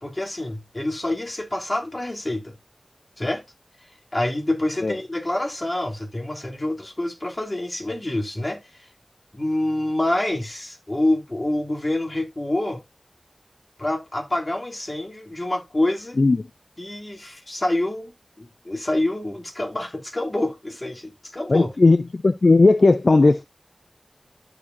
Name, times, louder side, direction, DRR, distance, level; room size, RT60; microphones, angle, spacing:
voice 1, 0.0-2.6 3.2-3.4 4.1-8.9 9.3-12.8 13.8-16.2 16.8-21.7, left 1 dB, 40° left, 2.9 m, -27 dB
voice 2, 21.5-23.5, left 3 dB, 75° left, 0.6 m, -16 dB
12.5 x 5.0 x 2.6 m
wide cardioid pair, 45°, 0 cm